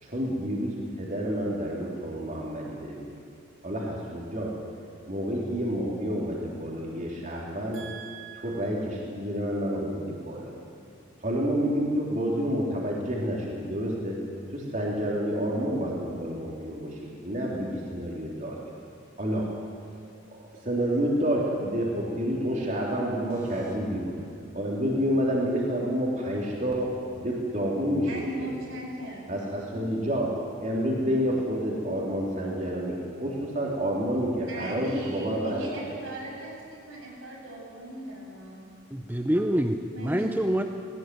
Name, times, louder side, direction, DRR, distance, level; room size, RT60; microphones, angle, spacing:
voice 1, 0.0-3.0 3.6-4.5 5.1-7.8 8.4-10.5 11.2-14.2 14.5-18.6 19.2-19.4 20.3-24.1 24.5-28.5 29.3-35.7, equal, 35° right, -3 dB, 3.6 m, -29 dB
voice 2, 7.7-8.6 23.3-23.7 28.0-29.3 34.5-38.6 39.9-40.3, right 1 dB, 75° right, -3 dB, 7.9 m, -39 dB
voice 3, 38.9-40.6, equal, 10° right, 5 dB, 0.8 m, -26 dB
20.0 x 18.5 x 9.6 m, 2.3 s
head